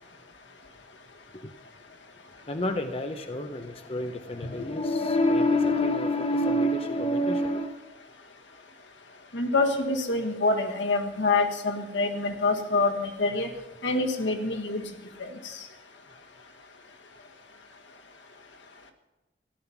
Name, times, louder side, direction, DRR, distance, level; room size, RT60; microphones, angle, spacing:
voice 1, 2.5-7.8, left 1 dB, 30° left, 0.7 m, -27 dB
voice 2, 9.3-13.5 13.8-14.8 15.2-15.6, left 3 dB, 85° left, 1.6 m, -26 dB
14.5 x 11.5 x 5.9 m
head